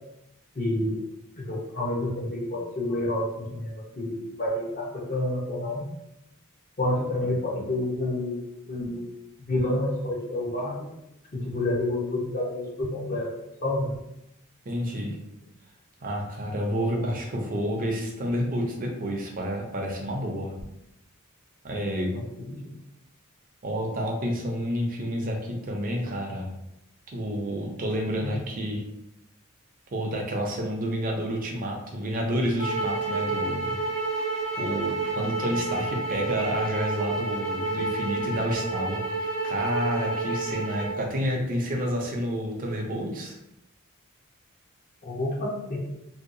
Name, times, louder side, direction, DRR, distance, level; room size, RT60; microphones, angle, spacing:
voice 1, 0.6-1.0 1.4-5.9 6.8-8.4 8.7-9.1 9.5-10.9 11.3-13.3 13.6-13.9 28.2-28.4 45.0-45.8, left 1 dB, 40° left, -4 dB, 0.8 m, -29 dB
voice 2, 14.7-15.2 16.0-20.5 21.6-22.1 23.6-26.5 27.1-28.8 29.9-33.8 34.1-34.2 34.6-43.4, equal, 40° right, 0 dB, 0.5 m, -29 dB
sound 1, 32.6-41.0, right 3 dB, 65° left, 1.0 m, -29 dB
2.7 x 2.2 x 2.6 m, 0.85 s
head